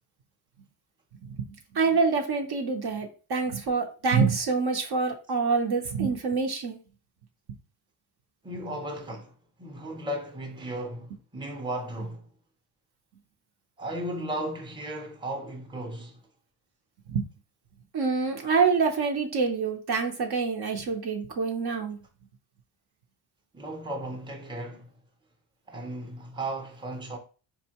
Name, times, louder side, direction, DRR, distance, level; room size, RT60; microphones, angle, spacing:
voice 1, 1.7-6.8 17.1-17.3 17.9-22.0, right 4 dB, 55° right, 0.7 m, -26 dB
voice 2, 8.4-9.3 9.6-12.3 13.8-16.2 23.5-24.9 25.7-27.2, right 1 dB, 10° right, 0.7 m, -35 dB
4.4 x 2.7 x 2.9 m
cardioid pair, 100°, 47 cm